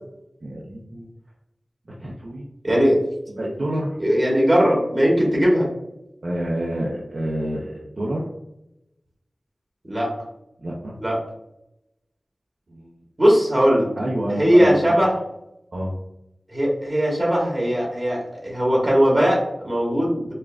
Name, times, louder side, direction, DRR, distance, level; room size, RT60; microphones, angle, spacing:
voice 1, 0.4-1.1 2.0-2.5 3.3-4.0 6.2-8.3 10.6-11.0 12.7-12.9 14.0-15.1 15.7-15.9, right 1 dB, 65° right, -4 dB, 0.7 m, -28 dB
voice 2, 2.6-3.0 4.0-5.7 9.8-10.1 11.0-11.2 13.2-13.9 14.3-15.1 16.5-20.3, equal, 40° right, -3 dB, 1.4 m, -19 dB
5.4 x 2.3 x 2.5 m, 0.83 s
wide cardioid pair, 75°, 0 cm